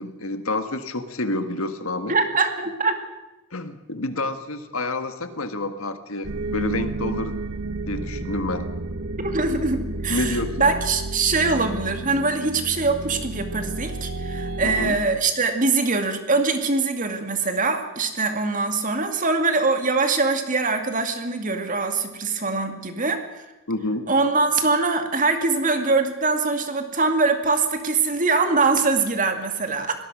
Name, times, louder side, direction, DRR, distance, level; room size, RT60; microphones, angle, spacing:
voice 1, 0.0-2.1 3.5-7.4 7.9-8.7 10.1-10.7 14.6-15.0 23.7-24.0, left 2 dB, 70° left, 9 dB, 1.7 m, -28 dB
voice 2, 2.1-2.9 9.2-23.4 24.1-29.9, right 3 dB, 40° right, 6 dB, 2.3 m, -23 dB
sound 1, 6.2-14.9, right 2 dB, 75° right, 1.2 m, -31 dB
24.0 x 18.5 x 6.3 m, 1.0 s
head